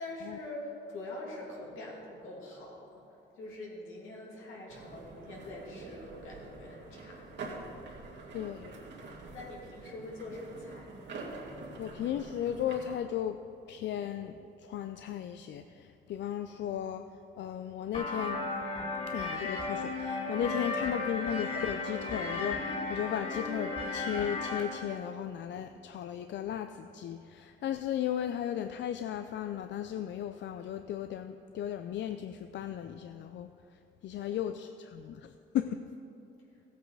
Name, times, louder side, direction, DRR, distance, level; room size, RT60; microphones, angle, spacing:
voice 1, 0.0-3.0 3.4-7.2 9.3-10.9 20.7-20.9 34.1-34.4, left 2 dB, 85° left, -3 dB, 2.8 m, -44 dB
sound 1, 4.7-13.0, right 3 dB, 60° right, 2.2 m, -46 dB
voice 2, 8.3-8.8 11.8-13.4 13.7-17.1 17.4-18.4 19.1-33.5 34.0-35.8, left 10 dB, 65° left, 9 dB, 0.5 m, -35 dB
sound 2, 17.9-24.6, left 3 dB, 35° left, 3.0 m, -34 dB
15.5 x 8.2 x 4.8 m, 2.7 s
cardioid pair, 90°, 20 cm